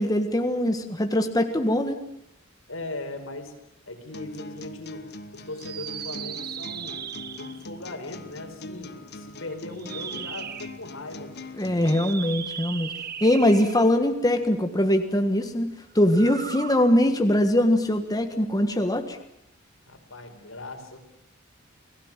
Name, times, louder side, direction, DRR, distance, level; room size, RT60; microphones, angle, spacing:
voice 1, 0.0-2.0 11.6-12.9 13.2-19.2, left 1 dB, 20° left, 6 dB, 1.6 m, -22 dB
voice 2, 2.7-3.5 3.9-5.0 5.3-7.0 7.3-11.3 19.9-21.0, left 2 dB, 80° left, 4 dB, 4.9 m, -38 dB
sound 1, 4.1-12.1, left 2 dB, 55° left, 1.5 m, -42 dB
sound 2, 5.5-7.7 9.7-10.8 11.8-14.0 16.0-16.9, right 9 dB, 50° right, 1.3 m, -37 dB
29.0 x 19.5 x 7.5 m, 0.79 s
head